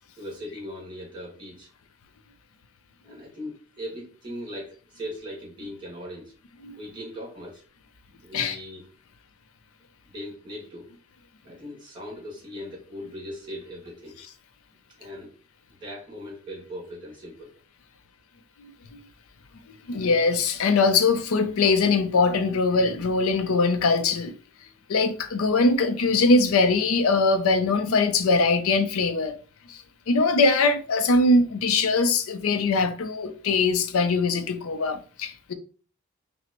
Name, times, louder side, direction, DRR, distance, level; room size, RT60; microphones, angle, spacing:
voice 1, 0.2-1.7 3.0-6.3 6.7-7.6 8.1-8.9 10.0-10.9 11.4-14.2 15.0-15.3 15.8-17.5, equal, 20° right, 1.7 m, -39 dB
voice 2, 19.9-24.3 24.9-29.3 29.7-35.5, left 3 dB, 75° left, 0.4 m, -22 dB
5.7 x 2.0 x 2.9 m
head